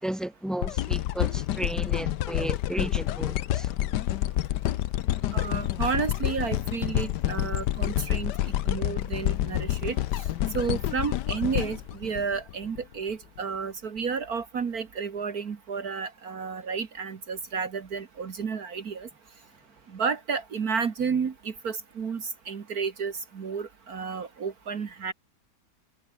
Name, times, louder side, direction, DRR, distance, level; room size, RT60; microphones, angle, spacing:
voice 1, 0.0-3.7 8.4-8.5 10.4-10.5, right 1 dB, ahead, 2.6 m, -34 dB
sound 1, 0.6-12.8 13.4-13.5, left 13 dB, 75° left, 1.3 m, -28 dB
voice 2, 5.3-8.3 8.7-10.2 10.5-19.1 19.9-25.1, right 5 dB, 60° right, 2.0 m, -31 dB
omnidirectional pair, 1.8 m